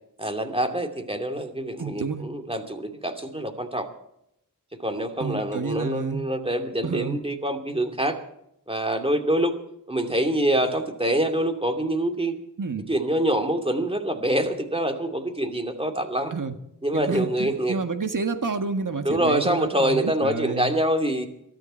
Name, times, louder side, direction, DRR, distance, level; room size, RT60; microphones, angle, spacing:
voice 1, 0.2-3.9 4.8-8.2 8.7-9.6 9.9-12.4 12.9-16.3 16.8-17.8 19.0-21.3, right 1 dB, 15° right, 4 dB, 2.7 m, -25 dB
voice 2, 1.8-2.2 5.2-6.2 6.8-7.2 12.6-12.9 16.3-16.6 16.9-20.8, right 4 dB, 65° right, 7 dB, 1.7 m, -29 dB
22.5 x 13.0 x 4.5 m, 0.76 s
wide cardioid pair, 65°, 34 cm